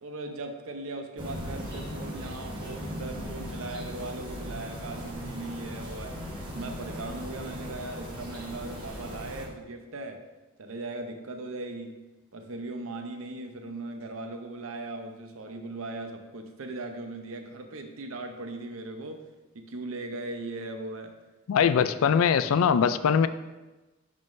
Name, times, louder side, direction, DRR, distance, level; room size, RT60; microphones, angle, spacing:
voice 1, 0.0-6.2 6.5-10.2 10.6-12.1 12.3-19.2 19.5-21.1 21.6-21.7, right 2 dB, 80° right, 0.7 m, -38 dB
sound 1, 1.2-9.5, equal, 25° right, 1.2 m, -38 dB
voice 2, 21.5-23.3, left 7 dB, 85° left, 0.3 m, -22 dB
10.5 x 3.7 x 2.6 m
head